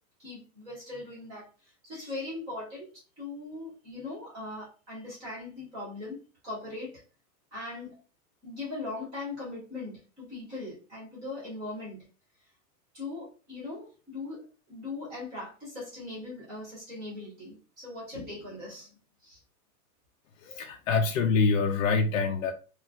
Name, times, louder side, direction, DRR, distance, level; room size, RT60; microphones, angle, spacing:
voice 1, 0.2-7.0 7.5-8.0 8.4-12.0 12.9-19.4, left 2 dB, 5° right, -8 dB, 0.4 m, -40 dB
voice 2, 20.4-22.5, left 4 dB, 55° left, 2 dB, 0.5 m, -25 dB
3.9 x 2.3 x 2.7 m, 0.36 s
supercardioid pair, 175°, 47 cm